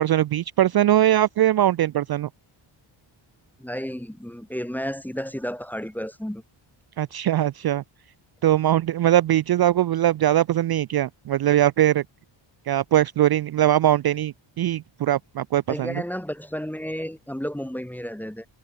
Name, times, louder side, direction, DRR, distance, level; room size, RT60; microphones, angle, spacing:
voice 1, 0.0-2.3 7.0-7.8 8.4-12.0 12.7-16.0, right 12 dB, 50° right, 0.5 m, -21 dB
voice 2, 3.6-6.4 15.7-18.5, equal, 5° left, 1.0 m, -32 dB
wide cardioid pair, 125°, 49 cm